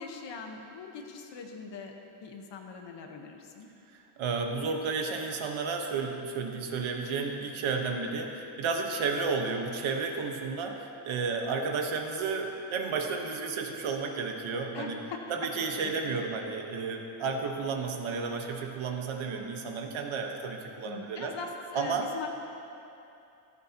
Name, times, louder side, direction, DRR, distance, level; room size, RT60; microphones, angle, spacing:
voice 1, 0.0-1.9 2.2-3.7 14.7-15.2 15.8-16.2 20.8-22.3, left 5 dB, 65° left, 3 dB, 1.3 m, -41 dB
voice 2, 3.9-15.0 15.3-21.4 21.7-22.1, right 4 dB, 80° right, 3 dB, 1.3 m, -32 dB
15.0 x 13.5 x 2.9 m, 2.7 s
wide cardioid pair, 155°, 47 cm